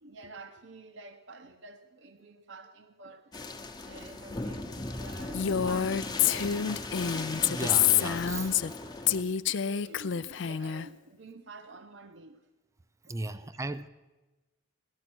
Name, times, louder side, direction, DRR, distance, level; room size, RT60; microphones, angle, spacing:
voice 1, 0.0-3.3 3.8-6.9 8.8-12.4 13.1-13.5, right 3 dB, 60° right, 0.7 m, -49 dB
sound 1, 3.3-9.2, left 2 dB, 20° left, 0.9 m, -37 dB
Female speech woman speaking, 5.3-8.8 9.1-10.9, left 9 dB, 60° left, 0.4 m, -27 dB
voice 2, 7.4-8.6 10.4-10.5 13.1-13.9, right 2 dB, 15° right, 0.5 m, -37 dB
17.0 x 13.0 x 6.1 m
head